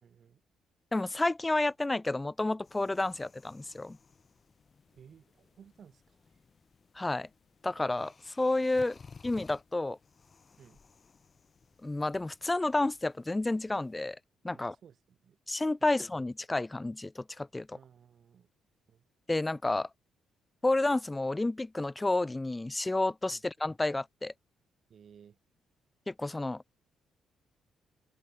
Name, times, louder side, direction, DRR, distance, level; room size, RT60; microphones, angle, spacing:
voice 1, 0.0-0.4 4.9-6.4 8.7-9.0 10.6-10.8 14.5-15.4 15.8-15.9 17.7-18.5 18.9-19.0 23.3-23.4 24.9-25.4, right 8 dB, 55° right, 2.4 m, -57 dB
voice 2, 0.9-4.0 7.0-7.3 7.6-9.0 9.2-10.0 11.8-14.2 14.4-14.8 15.5-17.8 19.3-19.9 20.6-24.3 26.1-26.7, left 2 dB, 15° left, 0.3 m, -30 dB
sound 1, 2.6-14.2, left 5 dB, 35° left, 5.2 m, -58 dB
cardioid pair, 90°, 0 cm